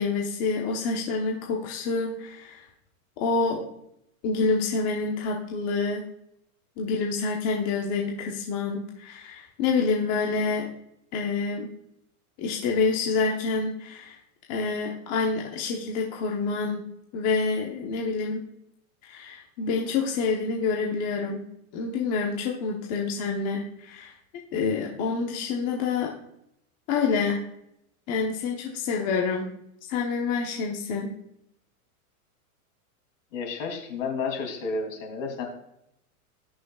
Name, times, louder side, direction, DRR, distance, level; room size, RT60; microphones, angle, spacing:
voice 1, 0.0-2.7 3.2-3.7 4.2-6.0 6.8-10.7 11.1-11.7 12.4-14.2 14.5-16.8 17.1-18.4 19.0-21.4 21.7-24.1 24.5-26.1 26.9-27.4 28.1-29.5 29.9-31.1, left 4 dB, 35° left, -1 dB, 1.1 m, -27 dB
voice 2, 33.3-35.4, left 4 dB, 60° left, 2 dB, 3.1 m, -31 dB
19.0 x 6.3 x 2.4 m, 0.80 s
supercardioid pair, 150°, 44 cm